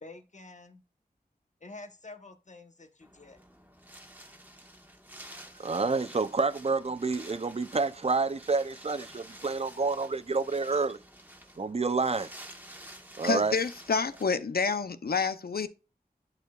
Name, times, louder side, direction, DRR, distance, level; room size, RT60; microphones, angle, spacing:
voice 1, 0.0-0.8 1.6-3.4, left 2 dB, 50° left, 1.0 m, -48 dB
Wind, 3.0-14.2, right 1 dB, 10° right, 1.2 m, -50 dB
voice 2, 5.6-11.0 11.6-12.3 13.2-13.5, right 4 dB, 40° right, 0.5 m, -28 dB
voice 3, 13.2-15.7, left 5 dB, 70° left, 0.6 m, -28 dB
10.5 x 4.7 x 2.3 m
wide cardioid pair, 40°, 16 cm